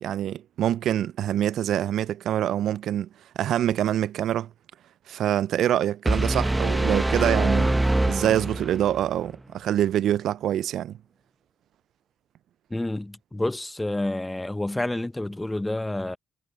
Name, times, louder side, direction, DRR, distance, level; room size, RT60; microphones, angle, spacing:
voice 1, 0.0-3.1 3.4-4.5 5.1-11.0, right 11 dB, 60° right, 0.7 m, -25 dB
sound 1, 6.1-9.0, right 1 dB, 10° right, 1.4 m, -24 dB
voice 2, 12.7-16.2, left 1 dB, 10° left, 1.4 m, -29 dB
figure-of-eight pair, 45°, 0 cm